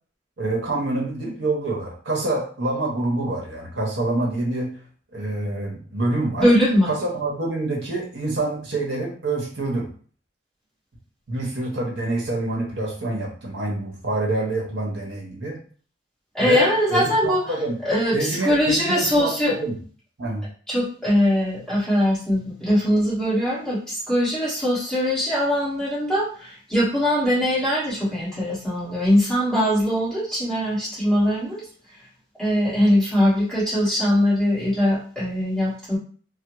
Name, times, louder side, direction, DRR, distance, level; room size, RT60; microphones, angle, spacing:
voice 1, 0.4-4.7 5.1-6.4 6.9-9.9 11.3-15.6 16.4-17.8 18.1-19.8 20.2-20.5, right 2 dB, 75° right, -2 dB, 1.0 m, -26 dB
voice 2, 6.4-6.9 16.3-17.5 17.8-19.5 20.7-31.6 32.4-36.0, equal, 5° left, -10 dB, 1.3 m, -21 dB
3.5 x 2.0 x 3.0 m, 0.44 s
head